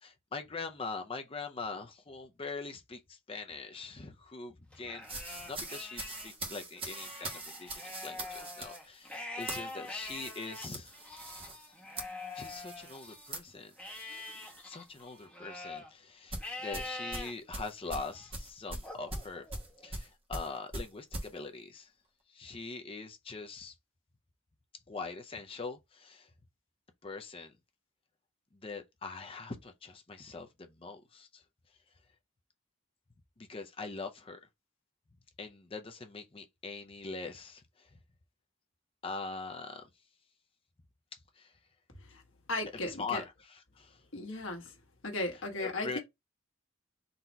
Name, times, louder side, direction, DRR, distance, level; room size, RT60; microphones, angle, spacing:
voice 1, 0.0-11.0 12.3-13.7 14.6-19.5 19.8-21.9 22.3-23.8 24.9-26.3 27.0-27.5 28.5-31.4 33.4-34.4 35.4-37.9 39.0-39.9 41.4-41.5 42.8-44.0 45.6-46.0, left 4 dB, 25° left, 0.5 m, -43 dB
Livestock farm animals working animals, 4.7-6.3 6.7-13.3 13.8-15.9 16.4-17.3 17.8-18.3 18.8-19.9, left 2 dB, 5° left, 1.2 m, -45 dB
sound 1, 5.0-14.6 15.0-15.2 16.3-21.3, right 2 dB, 25° right, 1.0 m, -43 dB
voice 2, 42.5-43.2 44.1-44.7 45.0-46.0, left 2 dB, 65° left, 1.3 m, -36 dB
3.9 x 2.8 x 4.4 m
head